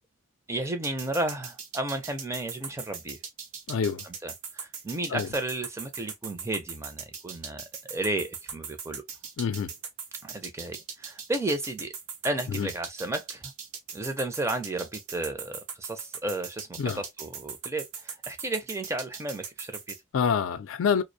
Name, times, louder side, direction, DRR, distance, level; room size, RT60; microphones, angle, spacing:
voice 1, 0.5-3.2 4.0-9.0 10.2-11.9 12.2-13.5 13.9-19.9, right 2 dB, 15° right, 0.4 m, -33 dB
sound 1, 0.8-20.0, right 6 dB, 85° right, 0.7 m, -39 dB
voice 2, 3.7-4.0 5.1-5.3 9.4-9.7 12.5-12.7 16.8-17.0 20.1-21.0, left 6 dB, 65° left, 0.3 m, -26 dB
2.4 x 2.0 x 2.5 m
head